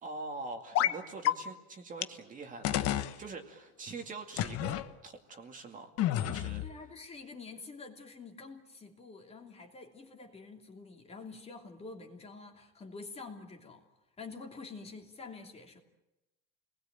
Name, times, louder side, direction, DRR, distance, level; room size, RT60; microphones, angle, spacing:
voice 1, 0.0-2.8 3.2-5.9 6.2-6.7, right 3 dB, 20° right, 4 dB, 2.3 m, -44 dB
sound 1, 0.7-1.0 1.2-1.3 2.0-2.1 2.6-3.1 4.4-4.8 6.0-6.7, left 12 dB, 45° left, 1.2 m, -29 dB
voice 2, 6.6-13.8 14.2-15.8, left 4 dB, 15° left, 3 dB, 2.9 m, -47 dB
30.0 x 20.5 x 9.0 m, 0.97 s
cardioid pair, 165°, 35 cm